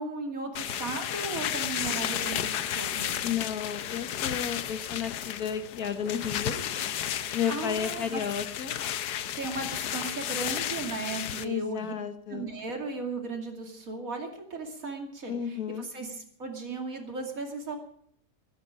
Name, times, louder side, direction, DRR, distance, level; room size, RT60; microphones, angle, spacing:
voice 1, 0.0-3.4 7.2-8.2 9.4-11.9 12.3-15.3 15.8-16.1 16.4-17.8, right 3 dB, 55° right, 3 dB, 2.8 m, -36 dB
sound 1, 0.6-11.5, left 10 dB, 80° left, 1.4 m, -33 dB
voice 2, 3.2-6.8 7.3-8.7 11.4-12.5 15.3-15.9, left 8 dB, 65° left, 8 dB, 1.8 m, -32 dB
21.0 x 10.5 x 5.0 m, 0.63 s
omnidirectional pair, 1.7 m